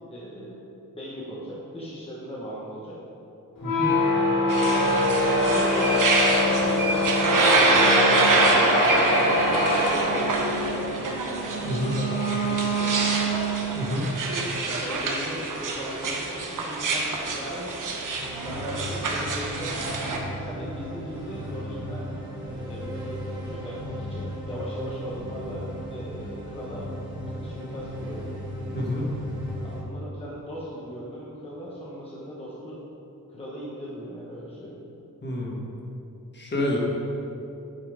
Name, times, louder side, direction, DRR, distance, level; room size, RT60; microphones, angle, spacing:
voice 1, 0.1-0.6 0.9-3.0 4.1-4.9 5.3-7.9 8.4-13.1 14.6-17.7 18.4-20.0 20.4-22.1 22.4-26.9 27.4-28.3 29.6-32.8 33.3-34.8, equal, 15° left, -6 dB, 1.1 m, -38 dB
sound 1, 3.6-13.9, left 1 dB, 85° left, 2.0 m, -24 dB
voice 2, 3.6-3.9 11.6-12.0 13.7-14.1 28.7-29.1 35.2-35.5 36.3-36.8, left 1 dB, 35° left, -3 dB, 1.5 m, -28 dB
sound 2, 4.5-20.2, right 3 dB, 70° right, 1.1 m, -26 dB
sound 3, 18.2-29.8, equal, 15° right, 1.7 m, -36 dB
9.0 x 5.6 x 5.0 m, 2.9 s
wide cardioid pair, 160°, 33 cm